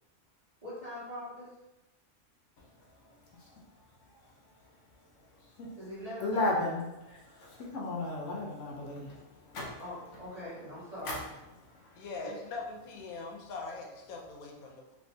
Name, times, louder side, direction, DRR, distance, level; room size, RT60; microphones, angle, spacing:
voice 1, 0.6-1.5 5.8-6.6 7.1-7.2 9.8-11.2 12.2-12.3, left 1 dB, 30° right, -10 dB, 1.3 m, -42 dB
voice 2, 6.2-6.8 7.2-9.8 11.0-11.2, left 2 dB, 65° left, -3 dB, 0.9 m, -34 dB
voice 3, 12.0-14.9, left 3 dB, 90° left, 1 dB, 1.1 m, -42 dB
3.3 x 3.0 x 2.7 m, 0.99 s
omnidirectional pair, 1.4 m